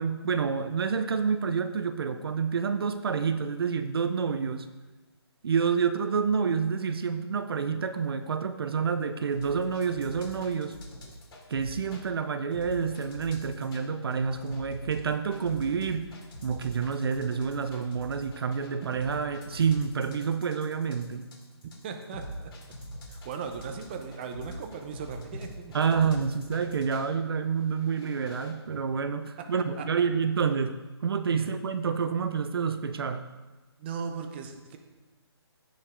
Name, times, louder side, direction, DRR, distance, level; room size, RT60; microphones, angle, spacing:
voice 1, 0.0-4.7 5.4-10.8 11.5-16.1 16.4-21.3 25.7-30.8 31.0-33.3, right 6 dB, 60° right, 10 dB, 0.6 m, -28 dB
sound 1, 9.3-12.0 12.5-13.8 14.1-27.1 27.7-28.5, equal, 55° left, 3.1 m, -44 dB
voice 2, 21.8-22.5 23.1-25.8 28.7-28.8 29.4-29.5 29.8-30.1 31.3-31.5 33.8-34.8, right 6 dB, 25° right, 5 dB, 0.7 m, -38 dB
16.0 x 5.4 x 3.7 m, 1.2 s
hypercardioid pair, 165°, 14 cm